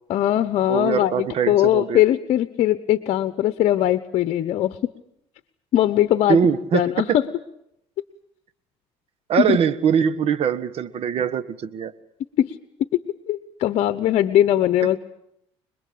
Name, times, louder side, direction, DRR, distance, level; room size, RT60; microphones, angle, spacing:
voice 1, 0.1-4.8 5.7-6.4 6.7-7.2 9.4-9.6 12.4-12.5 13.3-15.0, left 12 dB, 60° left, 12 dB, 1.1 m, -20 dB
voice 2, 0.7-2.0 6.3-7.2 9.3-11.9, right 7 dB, 55° right, 15 dB, 1.6 m, -22 dB
26.0 x 21.0 x 8.6 m, 0.76 s
cardioid pair, 105°, 12 cm